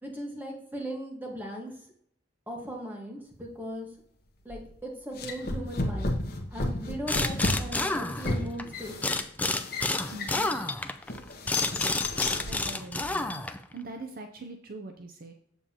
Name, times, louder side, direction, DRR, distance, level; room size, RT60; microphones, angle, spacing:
voice 1, 0.0-1.7 2.5-3.9 4.4-6.2 6.5-9.2, equal, 10° right, 0 dB, 1.4 m, -38 dB
sound 1, 4.5-4.7 5.2-10.6 11.1-12.6, left 2 dB, 55° left, 1.0 m, -33 dB
sound 2, 7.1-8.6 9.0-13.7, left 2 dB, 10° left, 0.3 m, -29 dB
voice 2, 10.1-10.5 12.4-13.4 13.7-15.3, right 2 dB, 50° right, 4 dB, 0.6 m, -42 dB
7.2 x 7.0 x 2.9 m, 0.66 s
head